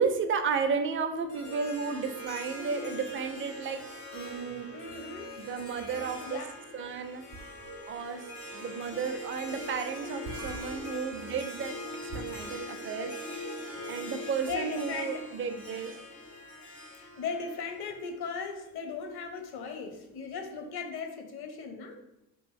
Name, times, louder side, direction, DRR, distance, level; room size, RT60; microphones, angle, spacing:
voice 1, 0.0-3.8 4.1-4.7 5.4-6.4 6.7-7.2 7.9-11.7 12.0-13.4 13.9-15.9, right 5 dB, 30° right, 7 dB, 0.4 m, -33 dB
sound 1, 0.9-12.2, right 4 dB, 70° right, 0.7 m, -50 dB
Harp, 1.3-18.6, left 1 dB, 85° left, 1.1 m, -42 dB
voice 2, 4.7-5.3 5.8-6.5 12.4-12.8 14.4-15.3 16.9-22.0, left 5 dB, 50° left, 5 dB, 0.8 m, -38 dB
2.9 x 2.5 x 3.7 m, 0.88 s
hypercardioid pair, 50°, 49 cm